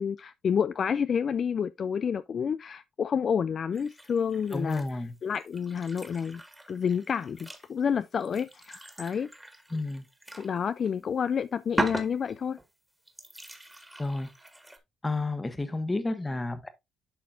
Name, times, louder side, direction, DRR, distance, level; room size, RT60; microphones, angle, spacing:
voice 1, 0.0-4.8 5.2-6.4 6.7-9.3 10.4-12.6, left 7 dB, 50° left, 0.3 m, -29 dB
sound 1, 3.7-4.9 5.3-10.6 10.8-10.9 11.7-12.7 13.1-14.8, right 1 dB, 5° right, 1.7 m, -39 dB
voice 2, 4.5-5.1 9.7-10.1 14.0-14.3 15.0-16.7, left 2 dB, 20° left, 1.3 m, -31 dB
11.5 x 4.2 x 2.5 m
cardioid pair, 90°, 0 cm